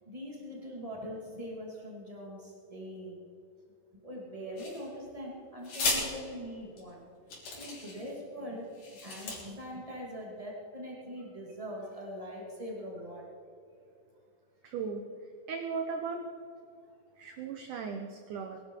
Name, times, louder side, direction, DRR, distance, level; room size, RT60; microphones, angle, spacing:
voice 1, 0.0-3.2 4.0-7.1 7.6-8.7 9.0-13.3, equal, 50° right, -3 dB, 0.4 m, -42 dB
sound 1, 4.6-5.1 5.6-6.0 6.8-6.9 7.3-8.1 8.7-9.4, left 3 dB, 50° left, 4.8 m, -34 dB
voice 2, 14.6-16.2 17.2-18.6, right 5 dB, 85° right, 4 dB, 1.8 m, -37 dB
21.5 x 12.0 x 4.6 m, 2.6 s
omnidirectional pair, 5.0 m